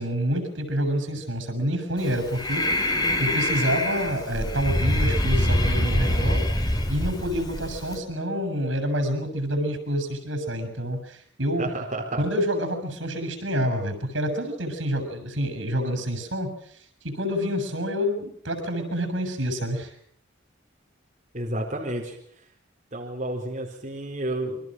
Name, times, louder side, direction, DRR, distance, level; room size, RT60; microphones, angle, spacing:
voice 1, 0.0-2.6 3.2-6.4 6.9-11.7 12.2-16.8 17.0-19.9, equal, 80° right, 9 dB, 7.2 m, -27 dB
Breathing, 2.0-8.0, left 1 dB, 20° left, 2.6 m, -25 dB
voice 2, 11.6-12.2 21.3-22.2 22.9-24.6, right 1 dB, 35° right, -1 dB, 4.3 m, -30 dB
28.5 x 23.5 x 6.3 m, 0.63 s
head